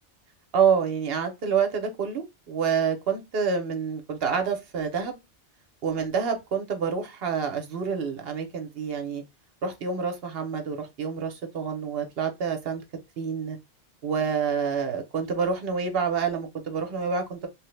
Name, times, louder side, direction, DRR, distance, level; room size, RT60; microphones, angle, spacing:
voice 1, 0.5-5.2 5.8-9.2 9.6-12.8 13.2-13.6 14.0-17.5, right 6 dB, 60° right, 0.8 m, -27 dB
3.0 x 2.1 x 3.1 m
omnidirectional pair, 1.2 m